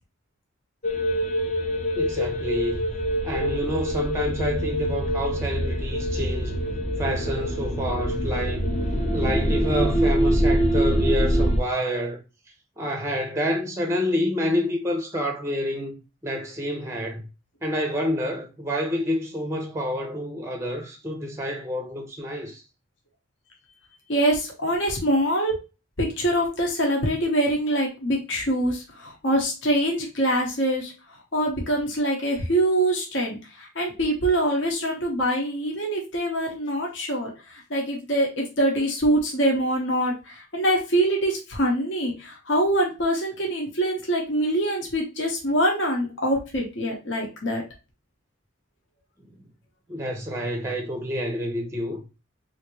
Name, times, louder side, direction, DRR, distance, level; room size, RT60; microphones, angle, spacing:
sound 1, 0.8-11.6, equal, 35° left, 0.7 m, -24 dB
voice 1, 1.9-2.9 3.2-6.6 7.0-8.7 9.1-12.2 12.8-16.0 16.2-17.2 17.6-22.6 49.3-49.5 49.9-52.0, equal, 15° right, 0.5 m, -28 dB
voice 2, 24.1-25.5 26.0-30.9 31.3-37.3 37.7-47.6, right 1 dB, 60° left, 0.9 m, -24 dB
3.5 x 2.6 x 3.0 m
head